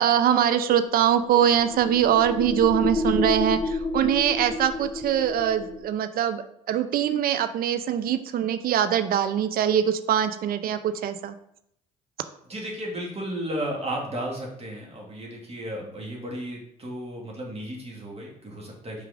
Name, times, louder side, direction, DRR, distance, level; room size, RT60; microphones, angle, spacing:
voice 1, 0.0-11.4, right 9 dB, 50° right, 11 dB, 0.6 m, -23 dB
sound 1, 0.9-5.9, left 3 dB, 20° left, 0.9 m, -30 dB
voice 2, 12.5-19.0, right 1 dB, 35° right, -2 dB, 2.5 m, -34 dB
5.8 x 4.7 x 3.7 m, 0.74 s
hypercardioid pair, 50°, 19 cm